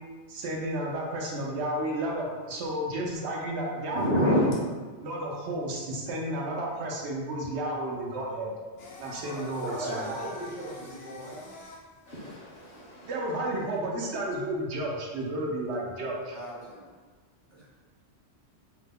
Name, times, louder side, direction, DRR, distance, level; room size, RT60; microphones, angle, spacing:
voice 1, 0.3-4.5 5.0-8.6 9.0-10.2 13.0-16.3, right 1 dB, 70° right, -2 dB, 0.8 m, -32 dB
voice 2, 3.9-4.7 12.1-13.1 16.4-16.5, left 1 dB, 55° left, -6 dB, 0.9 m, -27 dB
Singing, 8.8-13.7, left 3 dB, 85° left, 1.0 m, -47 dB
voice 3, 9.2-11.5 16.3-16.9 17.5-17.7, right 1 dB, 20° right, -8 dB, 0.5 m, -38 dB
2.9 x 2.0 x 3.5 m, 1.4 s
omnidirectional pair, 1.2 m